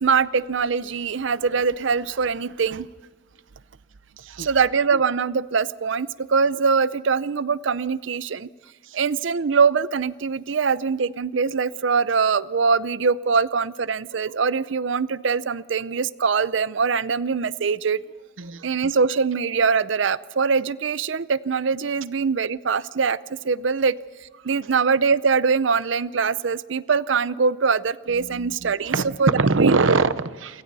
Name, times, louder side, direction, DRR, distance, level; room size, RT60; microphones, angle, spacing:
voice 1, 0.0-2.9 4.4-8.5 8.9-18.0 18.6-23.2 23.4-24.0 24.4-28.9 29.2-29.3 29.6-29.7, right 5 dB, 75° right, 17 dB, 0.6 m, -22 dB
voice 2, 4.2-4.5 8.8-9.0 18.4-18.7 28.1-30.6, right 3 dB, 90° right, 14 dB, 0.9 m, -23 dB
28.5 x 23.0 x 4.1 m, 1.5 s
head